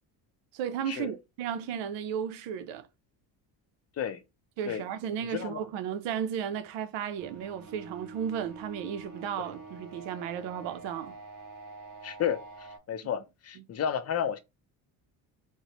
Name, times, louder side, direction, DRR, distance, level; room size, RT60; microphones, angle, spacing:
voice 1, 0.5-2.9 4.6-11.2, right 8 dB, 80° right, 0.8 m, -34 dB
sound 1, 7.2-12.8, right 3 dB, 45° right, 2.0 m, -46 dB
voice 2, 12.0-12.4 12.9-14.4, left 8 dB, 35° left, 0.5 m, -31 dB
4.6 x 2.1 x 2.9 m
cardioid pair, 115°, 43 cm